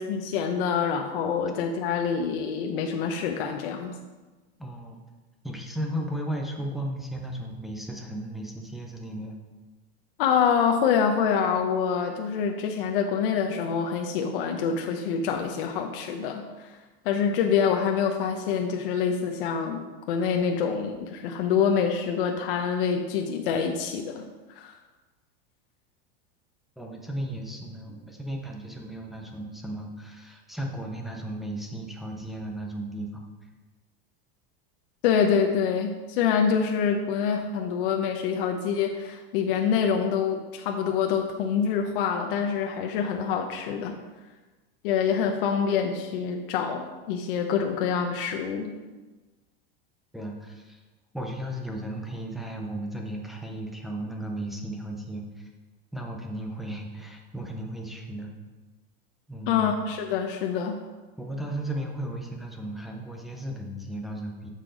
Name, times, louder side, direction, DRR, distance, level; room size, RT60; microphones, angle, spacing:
voice 1, 0.0-4.0 10.2-16.8 17.0-24.3 24.6-24.7 35.0-44.0 44.8-48.7 59.5-60.8, left 7 dB, 60° left, 3 dB, 0.8 m, -26 dB
voice 2, 4.6-5.0 5.4-9.4 26.8-33.3 50.1-50.8 51.1-55.5 55.9-58.3 59.3-59.7 61.2-64.5, right 1 dB, ahead, 0 dB, 0.4 m, -35 dB
8.8 x 6.7 x 3.8 m, 1.2 s
supercardioid pair, 175°, 31 cm